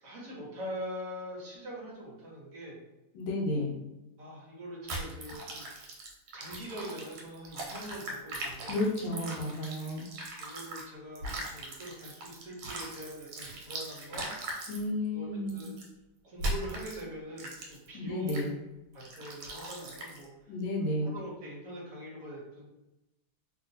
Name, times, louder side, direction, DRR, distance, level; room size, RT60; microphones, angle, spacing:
voice 1, 0.0-2.8 4.2-5.7 6.3-8.8 10.4-14.3 15.1-15.8 16.2-18.4 18.9-20.5 21.0-22.7, equal, 55° right, -4 dB, 1.0 m, -43 dB
voice 2, 3.1-3.7 8.6-10.0 14.7-15.7 17.9-18.5 20.5-21.1, left 1 dB, 75° left, 0 dB, 1.2 m, -32 dB
sound 1, 4.9-10.8 11.1-14.8 15.5-15.8 16.4-17.0 17.4-17.9 18.3-18.5 19.0-20.2, right 1 dB, 90° right, 1.5 m, -39 dB
3.0 x 2.7 x 2.6 m, 0.98 s
omnidirectional pair, 2.2 m